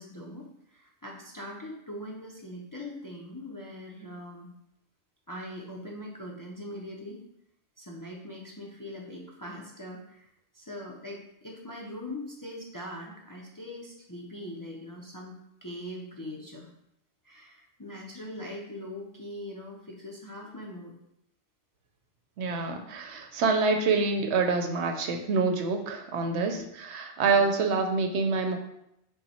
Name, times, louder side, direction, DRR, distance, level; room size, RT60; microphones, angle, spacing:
voice 1, 0.0-4.5 5.3-7.2 7.8-10.3 10.5-15.3 15.6-16.7 17.2-20.9 26.3-26.6 27.3-27.5, left 1 dB, 25° left, -2 dB, 0.5 m, -41 dB
voice 2, 22.4-28.6, right 4 dB, 75° right, 4 dB, 0.9 m, -26 dB
5.5 x 2.2 x 4.2 m, 0.80 s
omnidirectional pair, 1.2 m